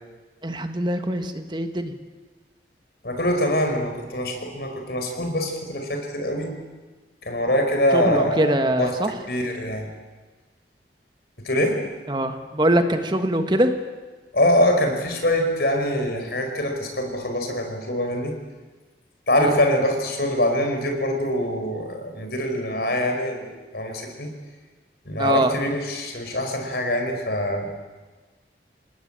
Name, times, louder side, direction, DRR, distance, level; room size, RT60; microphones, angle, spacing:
voice 1, 0.4-1.9 7.9-9.1 12.1-13.7 19.4-19.5 25.2-25.5, right 1 dB, 25° right, 7 dB, 1.5 m, -23 dB
voice 2, 3.0-6.5 7.2-9.9 11.4-11.8 14.3-18.3 19.3-24.3 25.0-27.7, left 1 dB, 60° left, 4 dB, 5.1 m, -24 dB
28.5 x 19.5 x 8.9 m, 1.3 s
head